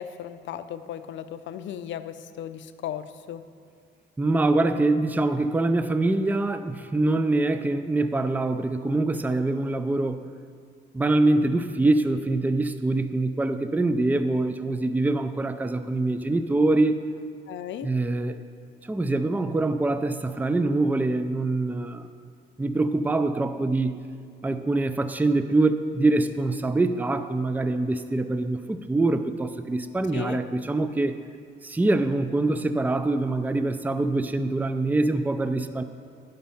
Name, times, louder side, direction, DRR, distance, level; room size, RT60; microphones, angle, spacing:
voice 1, 0.0-3.4 17.5-17.9 30.1-30.4, left 10 dB, 70° left, 12 dB, 0.5 m, -36 dB
voice 2, 4.2-10.2 10.9-17.0 17.8-18.4 18.9-22.1 22.6-24.0 24.4-31.2 31.6-35.8, right 2 dB, 10° right, 10 dB, 0.4 m, -24 dB
11.5 x 5.3 x 5.6 m, 2.4 s
cardioid pair, 90°, 20 cm